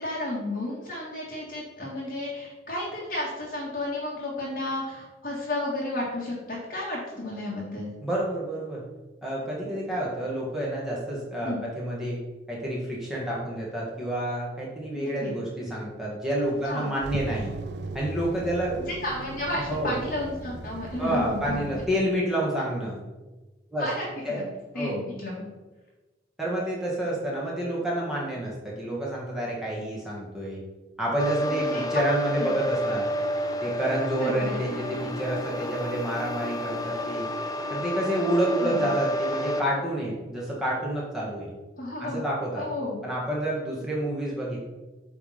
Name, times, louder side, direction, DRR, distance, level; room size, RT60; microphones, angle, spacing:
voice 1, 0.0-7.9 11.4-11.6 14.9-15.3 16.6-16.9 18.9-21.6 23.8-24.4 24.7-25.5 31.4-32.0 32.4-32.5 34.1-34.6 38.6-38.9 41.8-42.2 42.5-43.0, left 1 dB, 55° left, -5 dB, 1.6 m, -32 dB
voice 2, 8.0-8.8 9.2-12.2 12.5-17.5 17.9-18.8 19.7-20.0 21.0-23.0 23.7-23.9 24.2-24.4 24.7-25.0 26.4-30.6 31.0-33.1 33.6-37.3 37.7-41.5 42.0-42.7 43.0-44.6, right 1 dB, 5° right, -6 dB, 1.5 m, -29 dB
sound 1, 16.3-21.9, right 2 dB, 75° right, 0.5 m, -38 dB
sound 2, 31.2-39.6, equal, 20° left, 0.6 m, -30 dB
8.2 x 3.5 x 5.5 m, 1.2 s
head